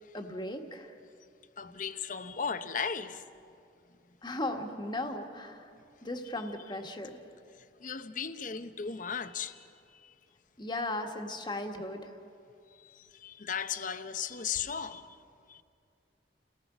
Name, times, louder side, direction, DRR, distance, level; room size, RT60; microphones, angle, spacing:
voice 1, 0.1-0.9 4.2-5.7 6.0-7.2 10.6-12.1, left 1 dB, 25° left, 1.6 m, -36 dB
voice 2, 1.6-3.2 7.6-9.7 9.9-10.1 12.8-15.1 15.5-15.6, left 6 dB, 45° left, 0.8 m, -36 dB
30.0 x 18.5 x 6.1 m
head